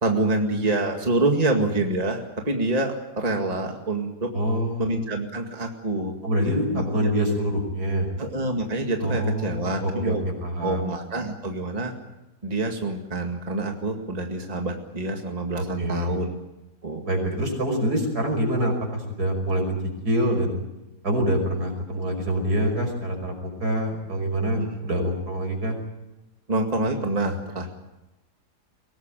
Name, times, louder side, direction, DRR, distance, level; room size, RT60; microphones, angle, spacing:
voice 1, 0.0-4.3 4.8-6.1 6.4-7.1 8.2-10.2 10.6-11.9 12.4-16.3 16.8-17.0 24.6-24.7 26.5-27.7, right 2 dB, 25° right, 3 dB, 2.1 m, -26 dB
voice 2, 4.3-4.9 6.2-8.1 9.0-10.8 15.8-16.2 17.0-19.8 20.0-20.6 21.0-25.8, equal, 70° right, 3 dB, 6.1 m, -25 dB
23.0 x 18.5 x 9.1 m, 0.98 s
omnidirectional pair, 1.7 m